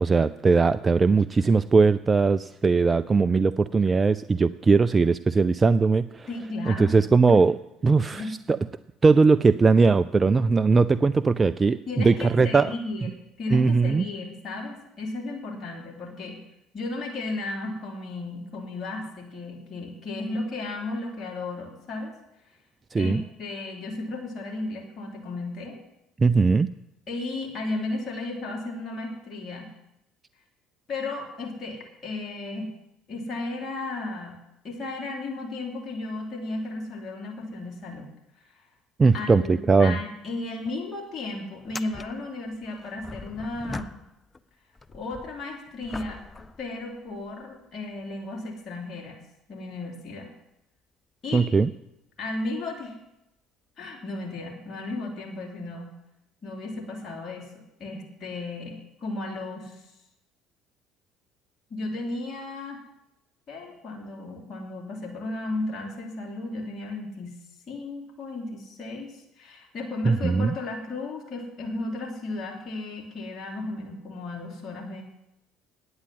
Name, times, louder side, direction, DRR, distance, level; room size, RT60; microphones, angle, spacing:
voice 1, 0.0-6.3 6.7-7.5 7.8-8.6 9.0-12.7 13.0-13.1 13.5-14.0 22.9-23.2 26.2-26.7 39.0-40.0 51.3-51.7 70.1-70.5, right 4 dB, 25° right, 14 dB, 0.4 m, -20 dB
voice 2, 6.3-7.5 8.1-8.3 11.9-13.1 13.4-16.4 16.7-22.1 23.0-25.8 27.1-29.7 30.9-32.7 33.1-34.4 34.6-38.1 39.1-39.5 39.8-43.9 44.9-46.2 46.6-49.2 49.5-50.3 51.2-51.5 52.2-53.0 53.8-55.9 56.4-57.5 57.8-59.8 61.7-62.8 63.5-67.3 67.7-75.0, left 2 dB, 40° left, -1 dB, 3.0 m, -34 dB
sound 1, 40.2-40.4 40.6-40.7 41.6-44.4 44.7-47.4 48.1-48.2 52.4-52.5 53.8-53.9, left 3 dB, 20° left, 0.6 m, -42 dB
9.6 x 8.7 x 7.7 m, 0.85 s
hypercardioid pair, 60°, 0 cm